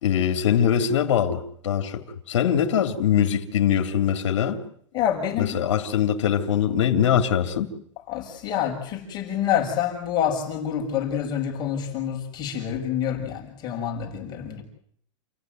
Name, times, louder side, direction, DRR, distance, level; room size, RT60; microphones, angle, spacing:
voice 1, 0.0-4.6 5.4-7.7, left 9 dB, 80° left, 3.3 m, -22 dB
voice 2, 4.9-5.6 8.1-14.6, left 9 dB, 30° left, 6.6 m, -27 dB
29.5 x 16.0 x 9.4 m
supercardioid pair, 150°, 16 cm